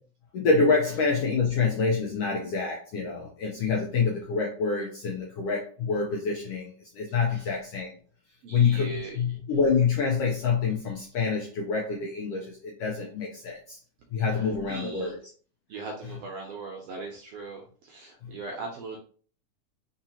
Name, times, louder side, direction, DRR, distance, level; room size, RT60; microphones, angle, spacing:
voice 1, 0.3-7.9 8.5-13.8 14.1-15.2 16.0-16.2 18.2-18.3, left 5 dB, 75° left, -1 dB, 1.4 m, -27 dB
voice 2, 8.4-9.2 14.7-15.1 15.7-19.0, right 4 dB, 80° right, 1 dB, 1.4 m, -39 dB
4.4 x 3.8 x 2.8 m, 0.43 s
omnidirectional pair, 3.6 m